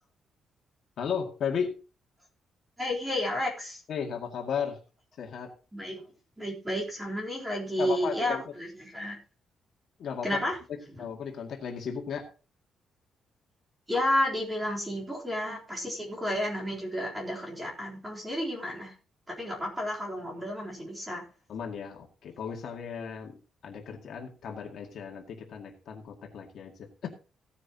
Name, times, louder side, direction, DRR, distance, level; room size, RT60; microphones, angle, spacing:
voice 1, 1.0-1.8 3.9-4.8 5.2-5.5 7.8-8.5 10.0-10.4 10.7-12.3 21.5-23.4 23.6-27.1, left 7 dB, 50° left, 2 dB, 2.1 m, -35 dB
voice 2, 2.8-3.8 5.7-6.0 6.4-9.2 10.2-10.6 13.9-18.9 19.3-21.2, left 1 dB, 10° right, -2 dB, 3.7 m, -31 dB
16.0 x 9.6 x 2.9 m, 0.34 s
cardioid pair, 180°, 0 cm